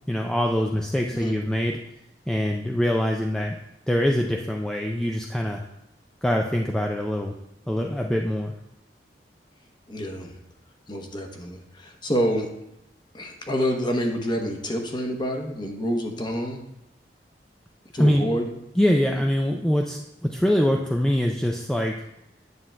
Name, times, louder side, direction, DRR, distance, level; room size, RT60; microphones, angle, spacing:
voice 1, 0.1-1.8 2.3-3.6 3.9-5.6 6.2-7.3 7.7-8.5 17.9-18.3 18.8-21.9, equal, 5° left, 1 dB, 0.3 m, -24 dB
voice 2, 9.9-10.3 10.9-12.5 13.1-16.6 17.9-18.5, equal, 25° left, 3 dB, 0.9 m, -27 dB
9.6 x 7.3 x 2.2 m, 0.81 s
head